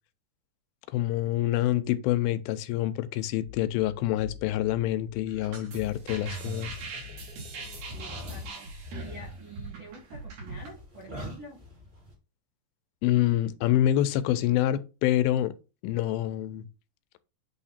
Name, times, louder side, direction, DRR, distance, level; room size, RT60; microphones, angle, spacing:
voice 1, 0.9-6.8 13.0-15.5 15.8-16.7, left 13 dB, 85° left, 2.4 m, -26 dB
sound 1, 5.3-10.7, right 4 dB, 85° right, 4.3 m, -42 dB
sound 2, 6.0-7.3 7.8-12.1, equal, 25° right, 1.4 m, -43 dB
sound 3, 6.3-8.5, left 7 dB, 40° left, 2.1 m, -47 dB
voice 2, 7.9-8.7 9.0-11.6, right 2 dB, 65° right, 1.3 m, -47 dB
8.5 x 2.9 x 4.2 m
omnidirectional pair, 4.2 m